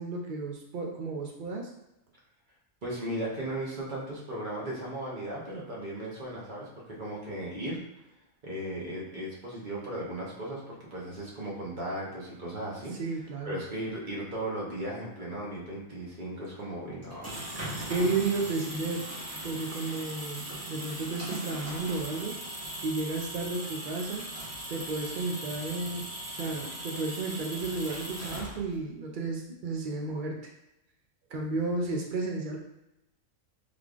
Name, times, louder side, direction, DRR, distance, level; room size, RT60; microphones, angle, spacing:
voice 1, 0.0-1.7 13.0-13.6 17.8-19.1 19.4-22.4 22.8-24.2 24.7-26.0 26.3-30.4 31.3-32.6, right 3 dB, 75° right, 0 dB, 0.4 m, -32 dB
voice 2, 2.8-7.8 8.4-12.9 13.4-17.4, right 1 dB, 40° right, -4 dB, 0.9 m, -36 dB
sound 1, 17.0-28.9, right 1 dB, 15° right, 0.8 m, -39 dB
3.5 x 3.3 x 2.4 m, 0.89 s
omnidirectional pair, 1.4 m